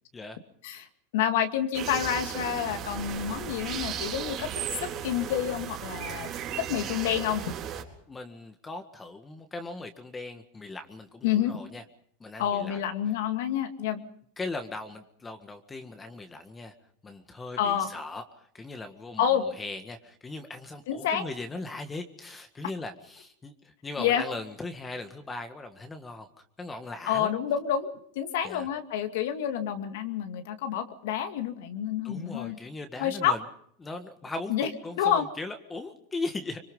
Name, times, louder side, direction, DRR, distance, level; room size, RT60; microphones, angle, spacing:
voice 1, 1.1-4.5 4.8-6.3 6.6-7.4 11.2-11.5 12.4-14.0 17.6-17.9 19.2-19.5 20.9-21.2 24.0-24.2 27.1-27.9 28.2-32.6 33.0-33.4 34.5-34.7 35.0-35.3, left 9 dB, 75° left, 7 dB, 2.3 m, -28 dB
sound 1, 1.7-7.8, right 9 dB, 40° right, 4.2 m, -35 dB
voice 2, 6.4-6.9 8.1-11.8 12.2-12.8 14.4-16.7 17.0-26.3 26.6-27.3 28.4-28.7 32.0-33.4 33.8-36.6, left 3 dB, 15° left, 7 dB, 1.8 m, -39 dB
25.5 x 23.0 x 5.5 m, 0.65 s
supercardioid pair, 120°, 0 cm